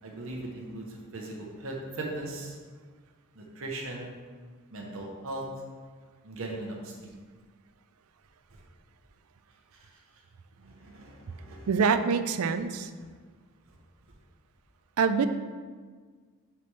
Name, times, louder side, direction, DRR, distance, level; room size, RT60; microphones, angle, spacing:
voice 1, 0.0-2.6 3.4-4.2 4.7-5.5 6.2-7.1 10.6-11.7, right 2 dB, 65° right, -1 dB, 0.9 m, -38 dB
voice 2, 11.7-12.9 15.0-15.3, right 5 dB, 85° right, 10 dB, 0.4 m, -25 dB
6.7 x 5.8 x 3.3 m, 1.5 s
head